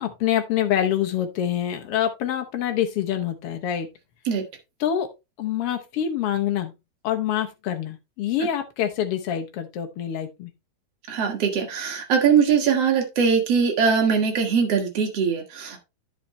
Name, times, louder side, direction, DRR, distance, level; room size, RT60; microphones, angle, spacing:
voice 1, 0.0-3.9 4.8-5.1 5.4-6.7 7.0-10.5, left 10 dB, 75° left, 1.3 m, -26 dB
voice 2, 11.1-15.8, right 6 dB, 50° right, 2.4 m, -21 dB
10.5 x 5.8 x 3.1 m
omnidirectional pair, 3.9 m